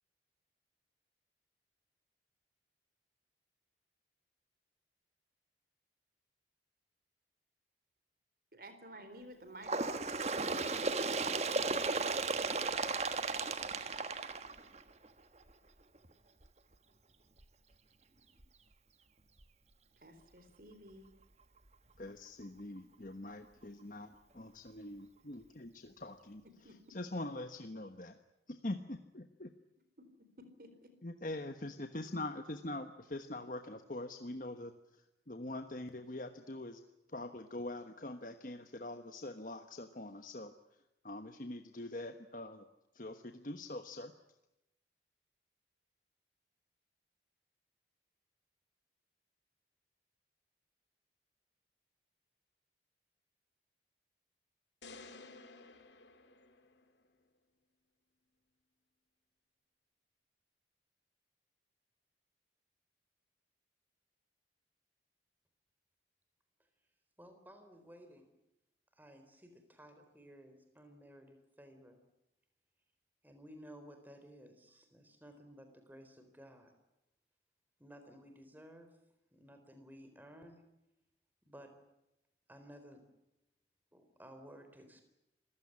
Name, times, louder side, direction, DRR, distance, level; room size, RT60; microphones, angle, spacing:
voice 1, 8.5-10.0 20.0-21.1 26.4-26.8 30.0-30.1 30.4-30.9, right 1 dB, 55° right, 9 dB, 4.1 m, -53 dB
Bird, 9.6-15.1 16.0-16.1 16.4-16.5 17.4-17.5 18.4-18.5 19.4-19.5, right 3 dB, 40° right, 1.4 m, -35 dB
voice 2, 22.0-26.4 26.9-28.2 28.5-29.5 31.0-35.0 35.3-36.8 37.1-40.5 41.0-42.6 42.9-44.1, left 2 dB, 50° left, 7 dB, 1.2 m, -43 dB
sound 1, 54.8-57.1, left 3 dB, 90° left, 2.5 m, -54 dB
voice 3, 67.2-68.3 68.9-72.0 73.2-76.7 77.8-78.9 79.3-80.6 81.5-81.8 82.5-83.0 83.9-85.0, equal, 10° right, 7 dB, 3.9 m, -56 dB
27.5 x 16.0 x 9.9 m, 0.90 s
head